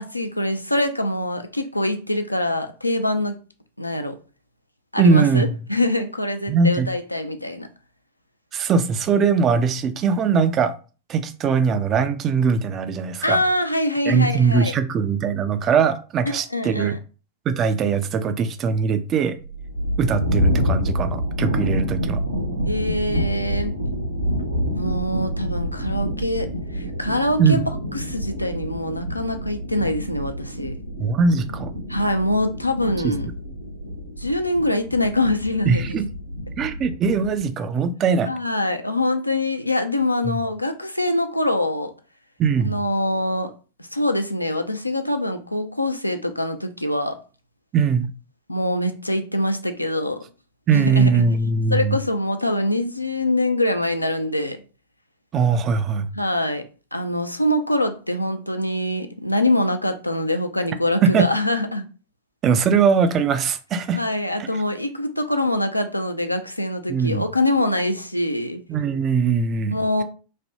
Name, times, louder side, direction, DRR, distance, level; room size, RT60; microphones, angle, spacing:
voice 1, 0.0-3.4 3.8-4.2 4.9-7.7 13.2-14.7 16.3-17.0 22.6-23.7 24.8-27.6 27.9-30.7 31.9-33.3 34.2-35.9 38.3-41.9 42.6-43.5 43.9-47.2 48.5-50.2 50.7-51.3 51.7-54.6 56.1-56.7 56.9-61.9 64.0-68.6 69.7-70.0, left 1 dB, 85° left, 0.3 m, -24 dB
voice 2, 5.0-5.5 6.5-6.9 8.5-10.7 11.1-13.4 14.0-17.0 17.5-19.4 20.0-22.2 27.4-27.6 31.0-31.7 33.0-33.1 35.7-36.1 36.6-38.3 40.2-40.4 42.4-42.8 47.7-48.1 50.7-52.0 55.3-56.1 61.0-61.3 62.4-64.0 66.9-67.2 68.7-70.0, right 5 dB, 30° right, 0.3 m, -20 dB
sound 1, 19.4-37.4, equal, 85° right, 0.7 m, -27 dB
3.2 x 2.2 x 2.7 m
figure-of-eight pair, 90°, 0 cm